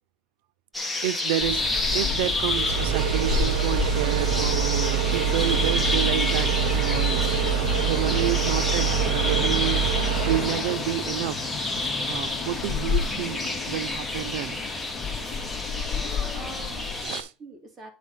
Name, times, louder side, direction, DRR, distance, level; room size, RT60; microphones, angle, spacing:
sound 1, 0.7-17.2, left 2 dB, 5° left, 1.3 m, -30 dB
voice 1, 1.0-7.2 7.8-11.4 11.8-14.6 17.0-17.3, right 13 dB, 90° right, 0.5 m, -30 dB
sound 2, 1.4-17.0, left 5 dB, 30° left, 2.3 m, -32 dB
sound 3, 2.5-10.6, right 8 dB, 75° right, 1.0 m, -25 dB
voice 2, 15.9-16.9 17.4-17.9, right 2 dB, 25° right, 2.5 m, -43 dB
9.0 x 4.3 x 5.6 m
cardioid pair, 170°, 0 cm